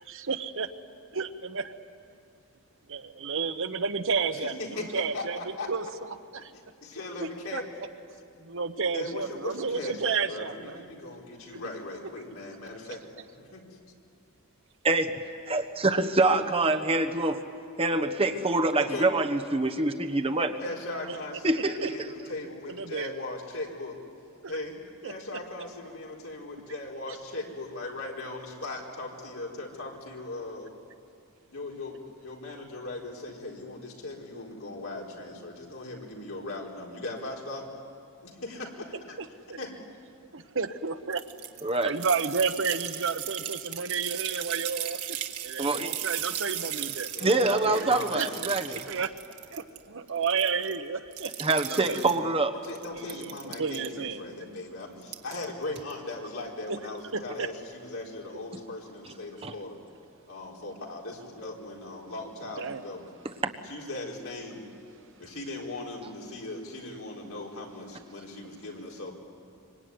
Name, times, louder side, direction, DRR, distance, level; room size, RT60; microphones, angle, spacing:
voice 1, 0.1-0.7 1.1-1.6 2.9-5.4 5.7-5.8 6.3-6.5 7.2-7.6 8.4-10.8 21.8-21.9 22.7-23.1 25.0-25.4 39.5-39.6 40.3-41.2 41.6-45.0 45.4-47.1 48.1-48.3 48.7-49.1 49.5-51.3 51.7-52.0 52.9-53.3 53.6-54.6 57.1-57.5 62.6-62.8, right 5 dB, 60° right, 9 dB, 1.1 m, -31 dB
voice 2, 4.3-5.7 6.4-6.5 6.8-7.7 8.9-13.0 13.3-13.6 18.8-19.1 20.6-24.0 24.5-24.8 25.0-30.7 31.5-37.6 38.2-39.2 39.5-39.7 47.1-48.8 52.0-52.1 52.5-59.8 60.3-63.1 63.7-64.6 65.2-69.1, left 2 dB, 65° left, -1 dB, 4.4 m, -39 dB
voice 3, 15.5-17.4 17.8-20.6 21.4-22.1 41.6-41.9 45.6-46.0 47.2-48.8 51.4-52.5 59.4-59.5, right 2 dB, 25° right, 5 dB, 1.2 m, -25 dB
sound 1, 41.1-49.8 50.1-50.8 51.1-52.2 52.6-53.9 55.0-55.4 55.8-55.9, right 11 dB, 90° right, 1.6 m, -36 dB
25.5 x 24.5 x 9.7 m, 2.5 s
head